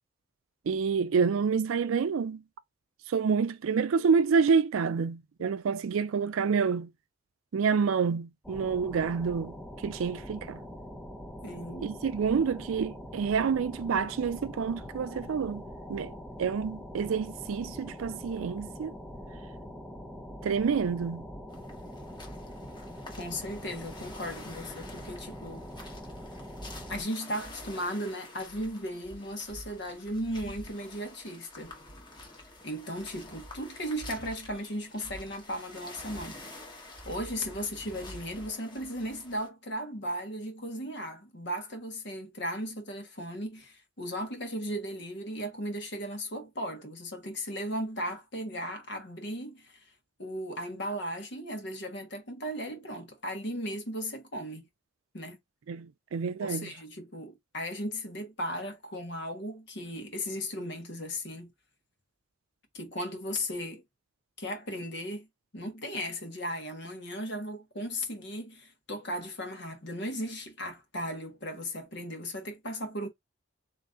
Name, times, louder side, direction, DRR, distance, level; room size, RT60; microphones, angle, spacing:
voice 1, 0.7-2.4 3.1-6.9 7.5-10.6 11.8-15.6 15.9-16.1 16.4-18.9 20.4-21.2 55.7-56.7, right 5 dB, 90° right, 0.4 m, -28 dB
sound 1, 8.4-27.0, equal, ahead, 0.6 m, -43 dB
voice 2, 11.4-12.0 23.2-25.9 26.9-31.7 32.6-36.4 37.0-49.9 50.2-54.6 55.1-55.4 56.4-61.5 62.7-63.8 64.4-65.3 65.5-73.1, equal, 60° left, 1.4 m, -36 dB
sound 2, 21.5-39.5, left 1 dB, 20° left, 1.2 m, -48 dB
3.8 x 3.1 x 3.6 m
head